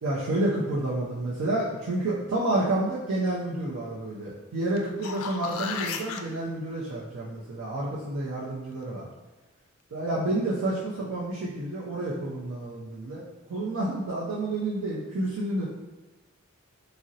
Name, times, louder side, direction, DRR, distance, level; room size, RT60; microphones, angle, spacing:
voice 1, 0.0-9.1 9.9-13.2 13.5-15.7, right 1 dB, 80° right, -6 dB, 0.5 m, -29 dB
sound 1, 4.8-6.2 11.0-11.1, left 6 dB, 80° left, 0.3 m, -34 dB
3.7 x 2.0 x 2.7 m, 1.1 s
head